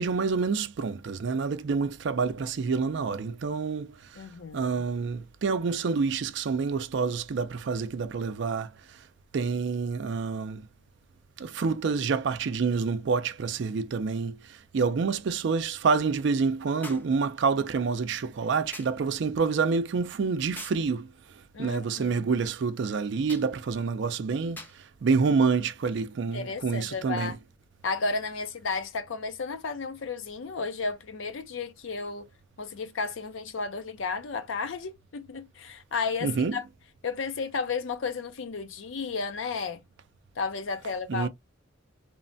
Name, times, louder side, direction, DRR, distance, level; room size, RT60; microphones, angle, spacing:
voice 1, 0.0-3.9 4.5-8.7 9.3-10.6 11.4-14.4 14.7-21.1 21.6-24.6 25.0-27.3 36.2-36.5 41.1-41.3, right 5 dB, 60° right, 0.4 m, -27 dB
voice 2, 4.2-4.9 21.5-22.3 26.3-27.4 27.8-32.3 32.6-36.7 37.0-39.8 40.4-41.3, left 4 dB, 70° left, 0.5 m, -33 dB
sound 1, 13.0-13.1 16.8-17.2 18.7-19.0 20.6-20.9 23.3-23.5 24.6-24.8 25.9-26.0, left 1 dB, 10° left, 0.5 m, -43 dB
3.0 x 2.1 x 2.6 m
head